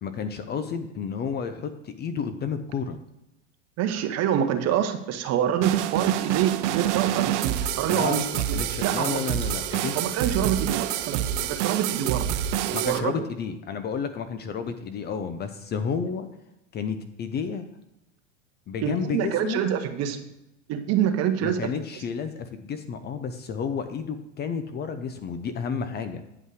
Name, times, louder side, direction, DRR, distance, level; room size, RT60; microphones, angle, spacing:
voice 1, 0.0-3.0 7.8-9.9 12.7-16.3 16.7-17.6 18.7-19.7 21.4-26.2, left 6 dB, 25° left, 9 dB, 0.6 m, -31 dB
voice 2, 3.8-8.2 8.8-9.2 9.9-12.3 12.6-13.1 18.8-20.2 20.7-21.7, right 9 dB, 40° right, 8 dB, 1.1 m, -26 dB
sound 1, 5.6-13.0, right 11 dB, 65° right, 0.7 m, -27 dB
9.6 x 5.4 x 4.8 m, 0.89 s
supercardioid pair, 120°, 39 cm